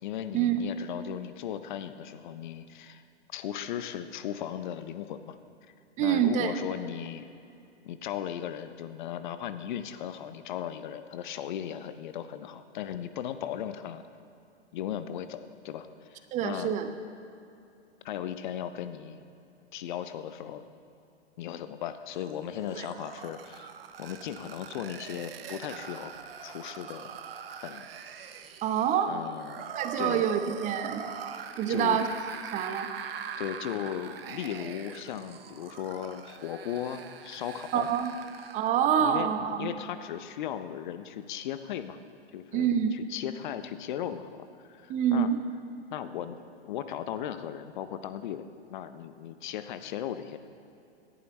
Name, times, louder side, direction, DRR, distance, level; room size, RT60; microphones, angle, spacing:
voice 1, 0.0-3.0 3.3-5.4 6.0-7.3 7.8-14.0 14.7-16.7 18.0-19.2 19.7-20.6 21.4-23.7 24.0-26.1 26.4-27.2 27.6-27.9 29.1-29.6 30.0-30.3 31.7-32.0 33.4-37.9 39.0-39.3 39.6-42.0 42.3-45.3 45.9-50.4, left 10 dB, 45° left, 11 dB, 0.7 m, -37 dB
voice 2, 6.0-6.5 16.3-16.9 22.8-22.9 28.6-29.1 29.7-31.0 31.6-32.1 32.5-32.9 37.7-38.1 38.5-39.7 42.5-42.9 44.9-45.4, right 9 dB, 20° right, 8 dB, 0.8 m, -26 dB
sound 1, 22.1-38.8, right 7 dB, 60° right, 0.8 m, -42 dB
18.0 x 11.0 x 3.2 m, 2.7 s
figure-of-eight pair, 105°, 33 cm